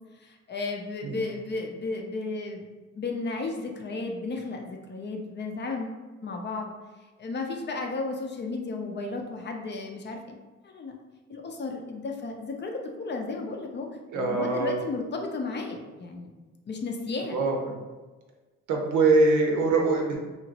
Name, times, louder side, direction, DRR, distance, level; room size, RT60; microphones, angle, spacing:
voice 1, 0.2-2.6 3.0-6.7 7.2-10.4 10.6-10.9 11.3-13.9 14.1-16.3 16.7-17.4, left 3 dB, 35° left, 2 dB, 0.5 m, -34 dB
voice 2, 14.1-14.8 17.3-17.8 18.7-20.2, right 3 dB, 80° right, 1 dB, 0.7 m, -23 dB
2.9 x 2.5 x 2.8 m, 1.2 s
cardioid pair, 90°, 30 cm